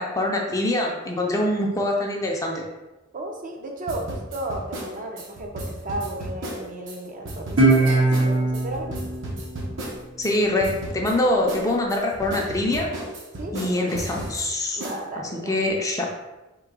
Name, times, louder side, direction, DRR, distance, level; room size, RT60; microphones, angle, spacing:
voice 1, 0.0-2.6 10.2-12.9 13.5-14.8 15.5-16.1, left 1 dB, 15° left, -1 dB, 0.5 m, -24 dB
voice 2, 3.1-8.9 13.4-13.9 14.7-15.7, right 1 dB, 40° right, 1 dB, 0.6 m, -34 dB
sound 1, 3.9-7.0 7.2-7.8 8.1-8.3 8.5-10.3 10.6-11.1 11.5-14.4 14.8-15.0, right 1 dB, 65° right, 0.9 m, -34 dB
Guitar, 7.6-10.8, right 2 dB, 85° right, 1.5 m, -22 dB
3.8 x 2.8 x 4.7 m, 1.1 s
head